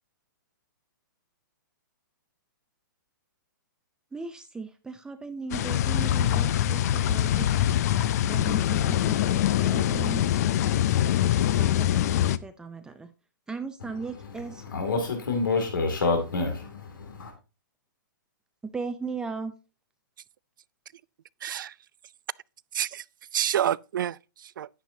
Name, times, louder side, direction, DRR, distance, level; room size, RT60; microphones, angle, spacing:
voice 1, 4.1-7.5 8.3-10.3 11.6-13.1 13.5-14.6 18.6-19.5, right 4 dB, 5° right, 0.5 m, -37 dB
sound 1, 5.5-12.4, left 11 dB, 50° left, 0.5 m, -24 dB
voice 2, 13.8-17.3, left 3 dB, 85° left, 2.4 m, -29 dB
voice 3, 21.4-21.7 22.7-23.0 23.3-24.7, right 10 dB, 75° right, 0.4 m, -28 dB
10.5 x 9.2 x 2.7 m
hypercardioid pair, 145°, 11 cm